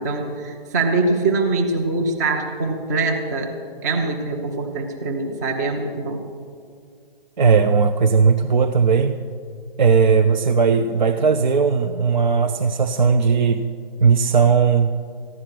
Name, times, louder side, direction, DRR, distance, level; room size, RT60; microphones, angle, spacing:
voice 1, 0.0-3.5 3.8-6.2, right 3 dB, 20° right, 3 dB, 0.8 m, -23 dB
voice 2, 7.4-9.1 9.8-13.6 14.0-14.9, right 5 dB, 50° right, 7 dB, 0.6 m, -17 dB
15.0 x 11.0 x 5.9 m, 2.2 s
figure-of-eight pair, 145°, 30 cm